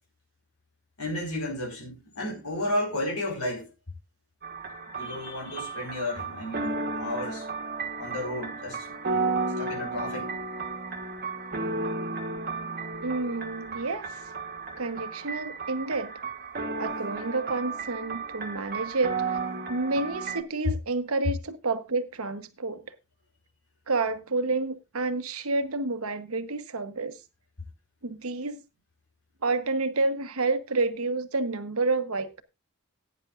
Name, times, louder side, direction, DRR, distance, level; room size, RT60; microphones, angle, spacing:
voice 1, 1.0-3.7 4.9-7.4 8.0-9.2 9.6-10.3, left 1 dB, 85° left, 4.6 m, -33 dB
sound 1, 4.4-20.4, right 4 dB, 45° right, 1.3 m, -33 dB
voice 2, 13.0-14.1 14.8-16.1 16.8-19.4 19.7-22.8 23.9-27.2 28.0-28.6 29.4-32.4, right 3 dB, 75° right, 1.1 m, -29 dB
17.0 x 9.7 x 2.5 m
head